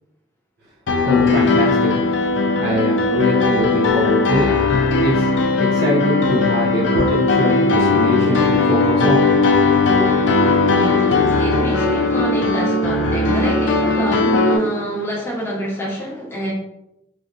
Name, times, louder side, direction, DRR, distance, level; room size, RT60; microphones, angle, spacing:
Piano, 0.9-14.6, left 3 dB, 80° left, 0.4 m, -17 dB
voice 1, 1.0-1.9 2.5-4.5 5.0-5.3 5.6-9.3, left 1 dB, 60° right, -6 dB, 0.6 m, -22 dB
voice 2, 10.7-16.5, equal, 15° left, -5 dB, 0.9 m, -27 dB
3.2 x 2.6 x 2.4 m, 0.85 s
head